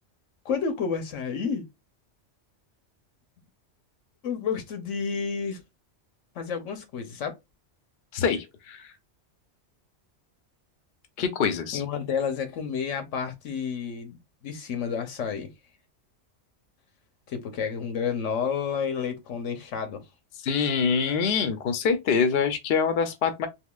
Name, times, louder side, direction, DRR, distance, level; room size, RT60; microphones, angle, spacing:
voice 1, 0.4-1.7 4.2-5.6 6.3-7.3 11.7-14.2 14.4-15.5 17.3-20.0, left 6 dB, 85° left, 1.2 m, -30 dB
voice 2, 8.1-8.9 11.2-11.8 20.4-23.5, left 6 dB, 65° left, 0.8 m, -25 dB
3.6 x 2.8 x 2.3 m
omnidirectional pair, 1.2 m